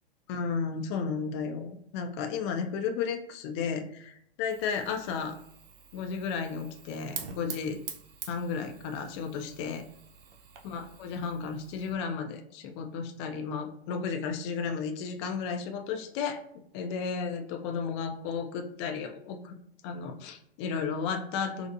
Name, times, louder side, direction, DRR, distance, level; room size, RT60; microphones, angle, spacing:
voice 1, 0.3-5.4 5.9-7.8 8.3-9.8 10.6-16.4 16.7-19.5 19.8-21.7, left 6 dB, 30° left, 5 dB, 0.4 m, -33 dB
Fire, 4.5-11.9, right 7 dB, 60° right, 0.7 m, -46 dB
4.0 x 2.5 x 2.5 m, 0.70 s
hypercardioid pair, 115°, 31 cm